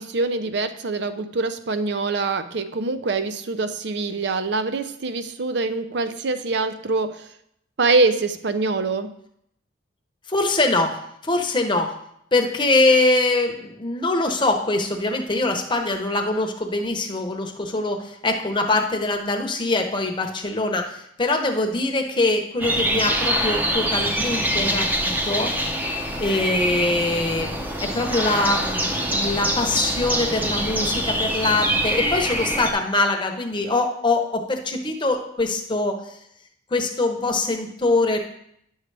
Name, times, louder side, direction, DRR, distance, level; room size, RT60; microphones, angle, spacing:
voice 1, 0.0-7.3 7.8-9.1, right 3 dB, 60° right, 10 dB, 0.5 m, -24 dB
voice 2, 10.3-11.0 11.2-11.9 12.3-25.5 26.2-36.2 36.7-38.2, left 2 dB, 25° left, 3 dB, 0.8 m, -23 dB
sound 1, 22.6-32.7, equal, 10° right, 0.6 m, -24 dB
10.5 x 6.4 x 3.3 m, 0.74 s
head